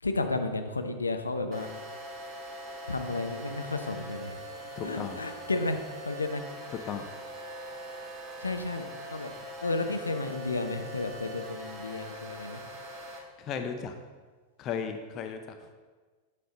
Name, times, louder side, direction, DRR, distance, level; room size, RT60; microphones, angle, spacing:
voice 1, 0.0-1.7 2.9-4.4 4.8-6.4 8.4-9.3 9.6-12.6, left 3 dB, 80° left, 7 dB, 0.7 m, -32 dB
sound 1, 1.5-13.2, right 1 dB, 25° right, 1.7 m, -42 dB
voice 2, 4.8-5.2 6.9-7.1 13.4-13.9 14.6-15.4, left 6 dB, 35° left, 6 dB, 0.7 m, -35 dB
7.9 x 7.6 x 3.8 m, 1.4 s
figure-of-eight pair, 90°, 0 cm